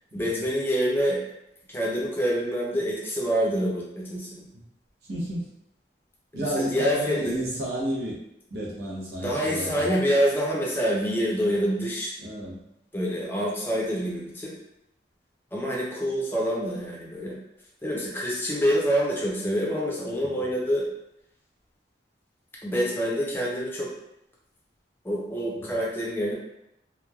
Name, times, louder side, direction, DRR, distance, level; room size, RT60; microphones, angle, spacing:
voice 1, 0.1-1.2 1.7-4.5 6.3-7.3 9.2-12.1 12.9-14.5 15.5-17.3 17.8-20.8 22.6-23.9 25.0-26.3, equal, 10° left, -4 dB, 0.5 m, -26 dB
voice 2, 5.1-5.4 6.3-8.2 8.5-9.9 12.2-12.6 20.2-20.5, equal, 65° right, -4 dB, 0.7 m, -31 dB
3.0 x 2.1 x 2.3 m, 0.82 s
head